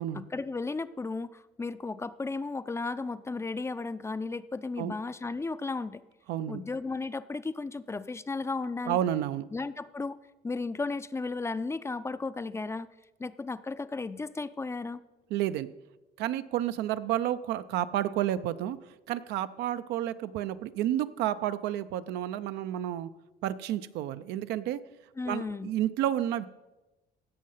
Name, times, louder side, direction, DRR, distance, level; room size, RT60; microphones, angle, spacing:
voice 1, 0.1-6.0 6.5-9.0 9.5-10.2 10.4-12.9 13.2-15.0 25.2-25.7, left 3 dB, 15° left, 14 dB, 0.4 m, -34 dB
voice 2, 6.3-6.6 8.9-9.4 15.3-15.7 16.2-18.8 19.1-23.1 23.4-24.8 25.3-26.4, right 12 dB, 85° right, 12 dB, 0.5 m, -30 dB
16.5 x 6.4 x 5.6 m, 1.1 s
cardioid pair, 110°, 17 cm